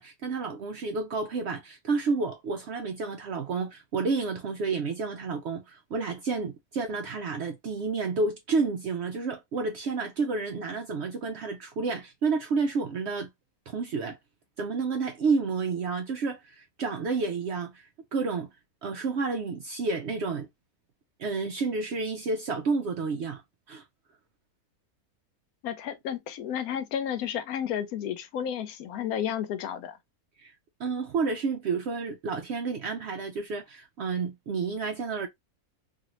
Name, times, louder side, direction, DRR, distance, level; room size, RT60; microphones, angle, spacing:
voice 1, 0.0-13.3 13.7-14.2 14.6-18.5 18.8-20.5 21.2-23.4 23.7-23.8 30.4-30.5 30.8-35.3, right 4 dB, 70° right, 0.6 m, -30 dB
voice 2, 25.6-30.0, left 9 dB, 80° left, 1.0 m, -32 dB
2.7 x 2.6 x 2.9 m
omnidirectional pair, 1.6 m